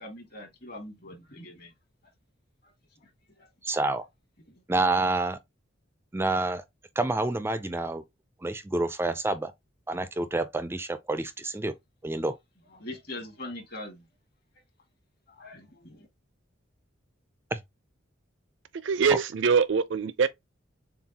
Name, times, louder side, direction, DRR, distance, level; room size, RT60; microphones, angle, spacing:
voice 1, 0.0-1.7 2.6-2.7 3.0-3.1 3.3-3.5 12.7-14.1 15.3-16.1, left 1 dB, 50° left, 2.0 m, -42 dB
voice 2, 3.6-4.1 4.7-5.4 6.1-6.6 7.0-8.0 8.4-9.5 9.9-11.7 12.0-12.4 17.5-17.6, right 2 dB, 10° right, 0.4 m, -28 dB
voice 3, 18.8-20.3, right 6 dB, 70° right, 0.5 m, -23 dB
7.0 x 2.4 x 2.8 m
head